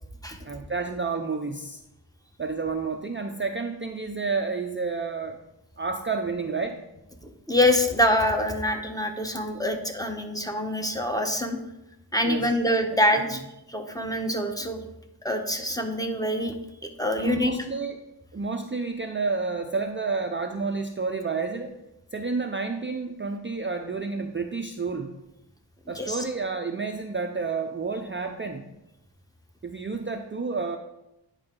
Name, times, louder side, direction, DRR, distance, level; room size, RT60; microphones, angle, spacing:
voice 1, 0.4-1.8 2.4-5.4 5.8-6.8 12.2-12.5 17.2-18.0 18.3-21.8 22.1-25.2 25.9-28.7 29.6-30.8, right 4 dB, 25° right, 5 dB, 0.5 m, -30 dB
voice 2, 7.2-11.6 12.1-13.4 13.7-14.8 15.2-16.5 17.0-17.5 25.9-26.2, left 1 dB, 10° left, 4 dB, 0.9 m, -25 dB
9.5 x 4.8 x 3.7 m, 0.92 s
wide cardioid pair, 60°, 46 cm